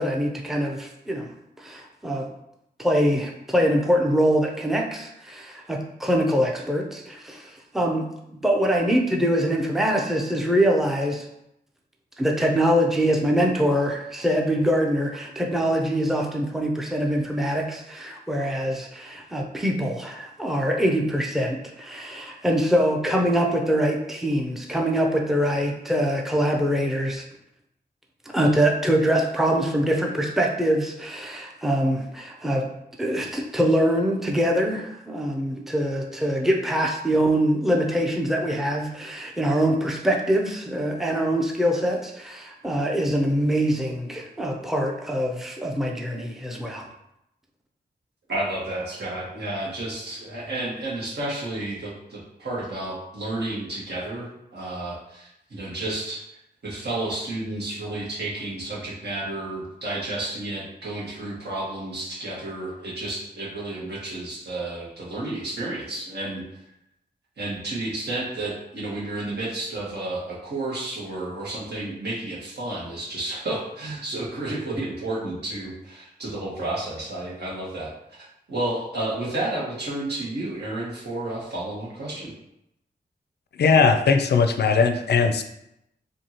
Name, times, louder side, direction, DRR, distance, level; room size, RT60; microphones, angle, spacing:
voice 1, 0.0-1.3 1.6-2.3 2.8-8.1 8.3-11.3 12.2-27.2 28.3-32.7 33.0-46.9, equal, ahead, 0 dB, 0.5 m, -24 dB
voice 2, 48.3-56.2 56.6-66.4 67.4-77.9 78.2-82.3, right 2 dB, 70° right, -6 dB, 1.5 m, -31 dB
voice 3, 83.6-85.4, left 5 dB, 70° left, 6 dB, 0.4 m, -19 dB
4.5 x 2.7 x 2.9 m, 0.82 s
wide cardioid pair, 85°, 18 cm